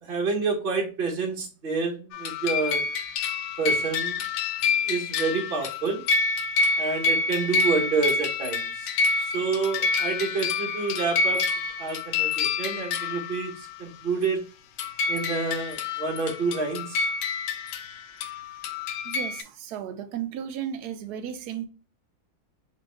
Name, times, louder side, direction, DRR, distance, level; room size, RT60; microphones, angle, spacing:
voice 1, 0.0-2.8 3.6-4.2 4.9-6.0 6.8-8.9 9.2-11.4 11.8-14.4 15.1-17.1, right 4 dB, 45° right, 1.0 m, -28 dB
sound 1, 2.1-13.8 14.2-14.3 14.8-19.4, left 4 dB, 85° left, 1.2 m, -27 dB
voice 2, 19.0-21.7, right 9 dB, 80° right, 1.1 m, -34 dB
3.4 x 3.1 x 2.9 m
omnidirectional pair, 1.7 m